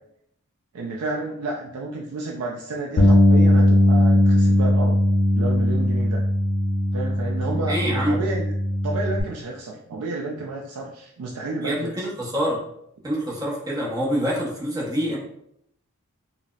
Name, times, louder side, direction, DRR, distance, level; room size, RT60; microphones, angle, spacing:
voice 1, 0.7-5.0 5.3-6.2 6.9-8.5 8.8-11.9, right 2 dB, 80° right, -1 dB, 0.4 m, -31 dB
Bass guitar, 3.0-9.2, left 1 dB, 60° left, 0.5 m, -19 dB
voice 2, 7.5-8.2 11.6-12.6 13.0-15.2, equal, 15° right, -5 dB, 0.7 m, -26 dB
4.0 x 2.0 x 2.3 m, 0.74 s
head